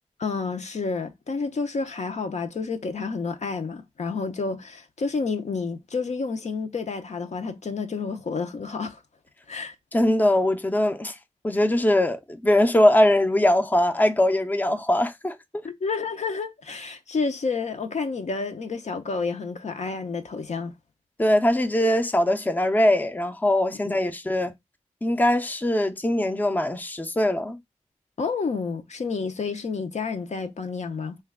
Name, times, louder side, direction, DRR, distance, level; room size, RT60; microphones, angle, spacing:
voice 1, 0.2-9.0 9.5-9.7 15.6-20.7 23.9-24.0 28.2-31.2, left 4 dB, 60° left, 0.5 m, -30 dB
voice 2, 9.9-11.1 11.4-15.6 21.2-24.5 25.0-27.6, left 1 dB, 15° left, 0.5 m, -21 dB
3.0 x 2.2 x 3.4 m
cardioid pair, 45°, 13 cm